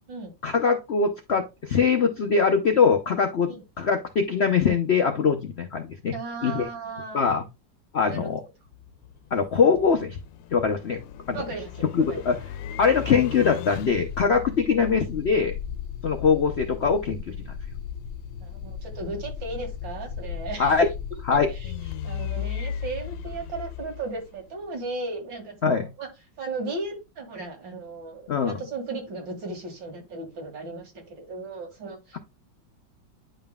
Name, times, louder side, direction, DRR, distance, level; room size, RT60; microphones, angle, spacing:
voice 1, 0.4-3.5 3.8-6.1 6.4-6.7 7.1-7.4 7.9-8.4 9.3-10.2 10.5-11.0 11.3-11.4 11.9-12.4 12.8-15.6 16.0-17.3 20.6-20.9 21.2-21.5 25.6-25.9 28.3-28.6, left 5 dB, 65° left, 4 dB, 0.6 m, -22 dB
voice 2, 6.1-7.4 8.0-8.3 11.3-12.2 14.6-14.9 18.4-20.8 21.3-21.7 22.0-26.1 26.4-32.2, right 3 dB, 85° right, 2 dB, 2.7 m, -36 dB
sound 1, 8.7-24.6, left 8 dB, 85° left, 1.4 m, -36 dB
9.7 x 5.5 x 2.3 m, 0.25 s
omnidirectional pair, 2.0 m